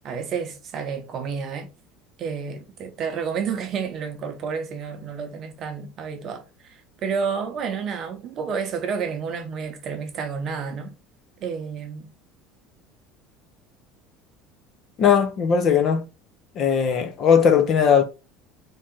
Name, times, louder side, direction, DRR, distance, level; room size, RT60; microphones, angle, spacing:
voice 1, 0.0-1.7 2.2-10.9 11.4-12.1, right 6 dB, 40° right, 0.8 m, -30 dB
voice 2, 15.0-16.0 16.6-18.0, left 7 dB, 35° left, 0.5 m, -18 dB
3.1 x 2.8 x 3.7 m
cardioid pair, 155°, 0 cm